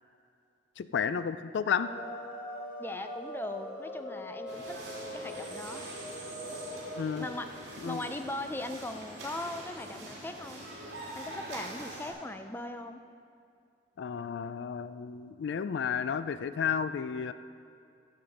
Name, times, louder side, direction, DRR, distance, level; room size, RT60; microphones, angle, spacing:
voice 1, 0.8-1.9 7.0-7.3 7.8-8.0 14.0-17.3, left 7 dB, 70° left, 13 dB, 0.3 m, -32 dB
sound 1, 1.7-7.3, equal, 30° left, 2.0 m, -42 dB
voice 2, 2.8-4.8 5.1-5.9 7.1-7.5 7.9-10.6 11.1-13.0, left 2 dB, 10° left, 7 dB, 0.5 m, -39 dB
sound 2, 4.5-12.1, right 1 dB, 65° right, 2.9 m, -44 dB
14.5 x 7.2 x 5.1 m, 2.4 s
head